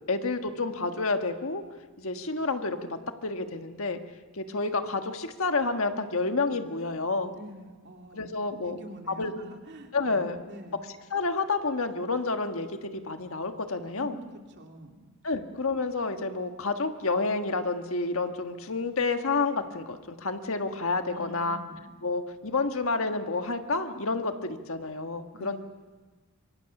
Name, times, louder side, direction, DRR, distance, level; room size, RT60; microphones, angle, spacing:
voice 1, 0.1-1.6 2.0-3.0 3.2-4.0 4.3-7.3 8.1-8.8 9.1-9.3 9.9-10.4 11.1-14.2 15.2-21.6 22.0-25.6, left 3 dB, 65° left, 6 dB, 1.6 m, -29 dB
voice 2, 7.3-8.3 8.6-10.8 14.0-15.1 21.1-21.9 25.3-25.6, right 1 dB, 50° right, 2 dB, 2.8 m, -46 dB
26.0 x 24.0 x 6.0 m, 1.3 s
head